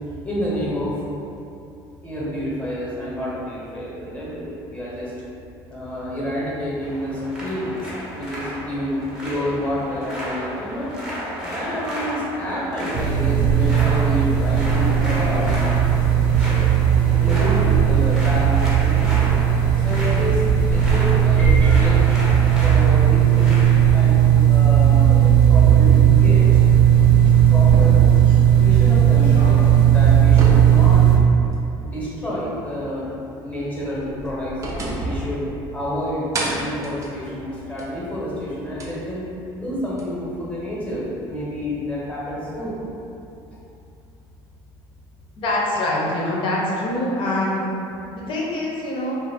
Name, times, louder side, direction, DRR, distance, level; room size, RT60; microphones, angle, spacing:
voice 1, 0.1-1.0 2.0-5.1 5.7-10.9 11.4-15.5 17.2-19.3 19.8-23.5 23.9-25.2 25.5-26.6 27.2-28.0 28.5-29.7 29.9-31.0 31.8-33.1 33.4-34.5 35.0-35.4 35.7-39.2 39.5-42.8, equal, 15° left, -8 dB, 0.9 m, -28 dB
sound 1, 6.8-23.9, equal, 5° right, 0.7 m, -33 dB
sound 2, 12.9-31.1, right 9 dB, 70° right, 1.0 m, -16 dB
sound 3, 27.7-29.4 29.8-31.8 32.1-32.2 33.8-35.9 36.3-38.0 38.8-38.9 40.0-40.1, right 1 dB, 30° right, 0.5 m, -30 dB
voice 2, 45.4-47.6 48.1-49.2, left 1 dB, 55° left, -4 dB, 0.7 m, -24 dB
2.5 x 2.1 x 3.4 m, 2.7 s
supercardioid pair, 105°, 10 cm